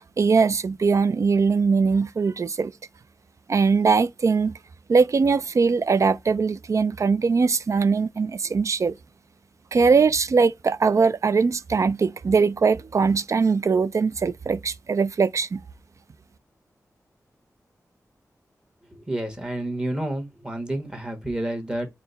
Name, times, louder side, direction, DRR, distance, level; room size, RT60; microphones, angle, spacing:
voice 1, 0.2-2.7 3.5-4.6 4.9-9.0 9.7-15.6, right 5 dB, 55° right, 0.3 m, -21 dB
voice 2, 18.9-21.9, right 1 dB, 15° right, 1.2 m, -29 dB
4.1 x 2.1 x 3.8 m
wide cardioid pair, 80°, 6 cm